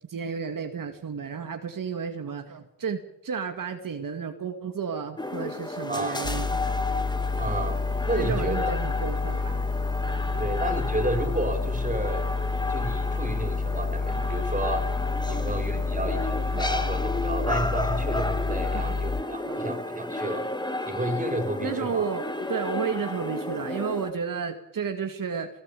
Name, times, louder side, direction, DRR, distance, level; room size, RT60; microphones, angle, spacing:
voice 1, 0.1-6.6 8.1-9.7 10.0-10.6 15.3-15.4 15.7-16.3 16.5-17.3 18.7-18.9 19.5-19.7 21.6-25.5, right 6 dB, 75° right, 6 dB, 2.1 m, -33 dB
sound 1, 5.2-24.1, left 2 dB, 15° left, 2.3 m, -33 dB
voice 2, 5.9-6.4 7.4-7.8 8.1-8.7 10.4-12.3 12.7-14.9 15.2-20.5 20.9-22.1, right 1 dB, 25° right, 6 dB, 4.8 m, -31 dB
sound 2, 6.2-19.2, left 4 dB, 45° left, 1.2 m, -29 dB
19.5 x 19.5 x 8.4 m, 0.80 s
cardioid pair, 70°, 33 cm